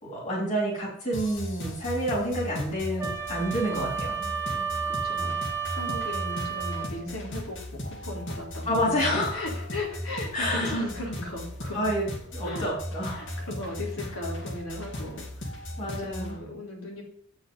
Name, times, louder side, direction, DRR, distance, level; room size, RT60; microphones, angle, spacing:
voice 1, 0.0-4.1 8.6-9.4 10.3-10.8 11.7-12.1 12.3-13.2 15.8-16.4, equal, 35° left, -6 dB, 3.3 m, -28 dB
sound 1, 1.1-16.4, left 1 dB, 60° left, 2.6 m, -37 dB
Wind instrument woodwind instrument, 3.0-7.0, right 7 dB, 10° right, 1.1 m, -32 dB
voice 2, 3.4-11.9 12.4-12.7 13.1-15.5 15.8-17.0, left 1 dB, 85° left, -2 dB, 3.6 m, -37 dB
8.6 x 6.4 x 5.4 m, 0.64 s
head